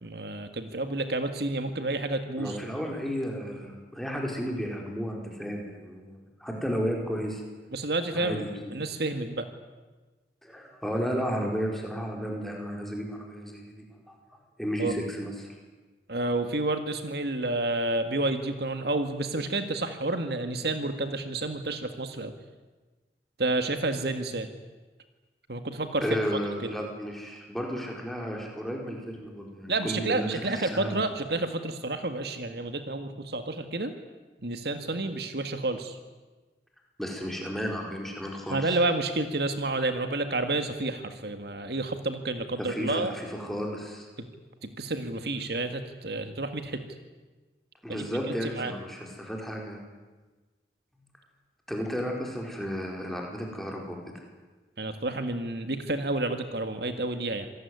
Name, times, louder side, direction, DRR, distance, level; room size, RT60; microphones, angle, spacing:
voice 1, 0.0-2.6 7.7-8.4 8.7-9.5 14.8-15.0 16.1-22.3 23.4-24.5 25.5-26.0 26.6-26.7 29.7-33.9 34.4-36.0 38.5-43.1 44.6-46.8 47.9-48.7 54.8-57.5, right 2 dB, 70° right, 7 dB, 1.9 m, -30 dB
voice 2, 2.4-7.4 8.1-8.7 10.4-13.6 14.1-14.2 14.6-15.5 26.0-31.0 37.0-38.8 42.6-44.1 47.8-49.8 51.7-54.0, equal, ahead, 0 dB, 4.7 m, -33 dB
26.5 x 19.5 x 9.7 m, 1.3 s
head